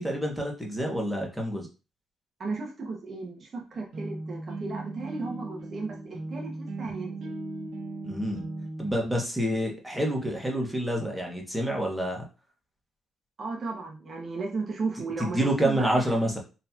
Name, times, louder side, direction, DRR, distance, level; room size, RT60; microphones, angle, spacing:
voice 1, 0.0-1.7 8.0-8.4 8.8-12.2 15.2-16.4, equal, 5° right, -1 dB, 1.5 m, -28 dB
voice 2, 2.4-7.3 13.4-16.2, right 3 dB, 45° right, -1 dB, 1.2 m, -35 dB
sound 1, 3.7-8.9, right 2 dB, 75° right, 1.6 m, -37 dB
4.2 x 3.2 x 2.9 m, 0.31 s
cardioid pair, 90°, 0 cm